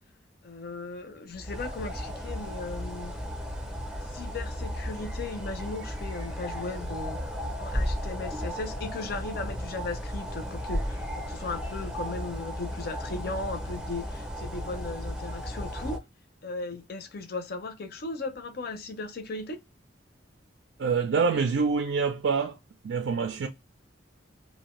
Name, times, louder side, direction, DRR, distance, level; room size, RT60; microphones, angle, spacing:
voice 1, 0.4-3.1 4.1-7.2 7.6-11.0 11.3-16.0 16.4-19.6, left 3 dB, 55° left, 0.5 m, -37 dB
sound 1, 1.3-16.0, equal, 5° right, 0.5 m, -34 dB
voice 2, 20.8-22.6 22.8-23.5, right 5 dB, 70° right, 0.4 m, -26 dB
2.5 x 2.1 x 2.9 m
head